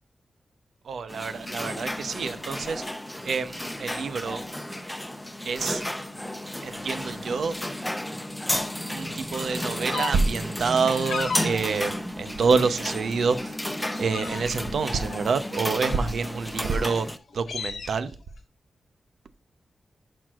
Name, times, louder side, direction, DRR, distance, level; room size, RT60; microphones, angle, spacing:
voice 1, 0.8-2.8 3.2-4.4 5.4-5.8 6.6-7.6 8.9-13.5 14.0-17.1 17.3-18.1, right 5 dB, 80° right, 0.7 m, -27 dB
sound 1, 1.1-17.2, left 1 dB, 5° left, 0.6 m, -33 dB
sound 2, 9.9-10.1 10.8-11.5 12.1-12.8 13.2-13.4 13.8-14.6 15.0-16.2 16.8-16.9 17.2-17.9, left 5 dB, 90° left, 1.6 m, -35 dB
10.5 x 6.0 x 2.4 m
wide cardioid pair, 140°, 0 cm